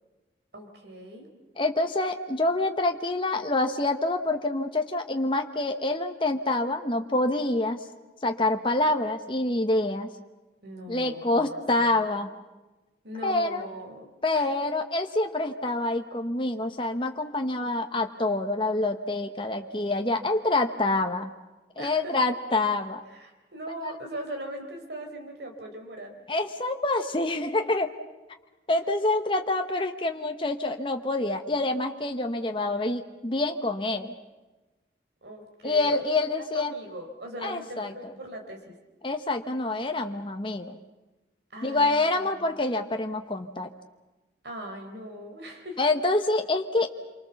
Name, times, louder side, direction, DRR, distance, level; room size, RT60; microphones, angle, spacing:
voice 1, 0.5-1.3 10.6-11.8 13.0-14.1 14.3-14.5 21.8-22.1 23.1-26.2 35.2-36.0 36.5-38.7 41.5-42.3 44.4-45.8, equal, 70° right, 2 dB, 4.1 m, -40 dB
voice 2, 1.6-7.9 8.2-10.1 10.9-12.3 13.2-13.7 14.2-21.3 21.8-23.0 23.8-23.9 26.3-27.9 28.7-34.1 35.6-36.7 37.4-38.1 39.0-40.8 41.6-43.7 45.8-46.9, left 2 dB, 30° left, 5 dB, 0.9 m, -26 dB
27.0 x 24.0 x 7.1 m, 1.1 s
head